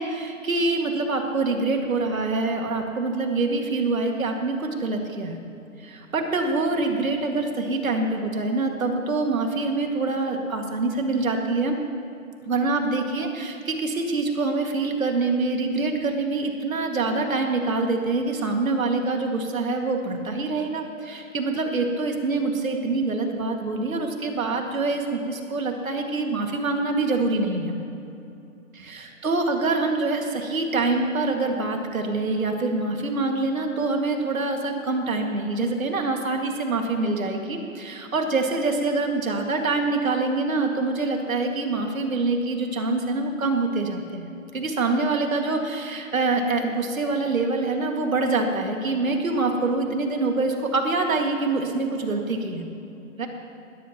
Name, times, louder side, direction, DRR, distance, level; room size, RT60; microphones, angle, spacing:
voice 1, 0.0-5.4 5.8-11.8 12.5-27.8 28.8-52.7 53.2-53.3, right 3 dB, 75° right, 3 dB, 2.3 m, -25 dB
20.0 x 14.0 x 3.1 m, 2.7 s
hypercardioid pair, 180°, 41 cm